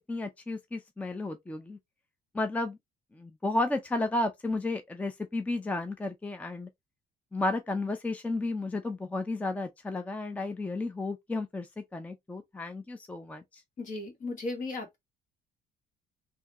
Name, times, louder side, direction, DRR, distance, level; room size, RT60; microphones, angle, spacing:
voice 1, 0.1-1.8 2.3-2.8 3.2-6.7 7.3-13.6, left 2 dB, 10° left, 0.5 m, -33 dB
voice 2, 13.8-15.0, left 2 dB, 50° left, 1.7 m, -36 dB
3.4 x 2.7 x 2.9 m
cardioid pair, 110°, 17 cm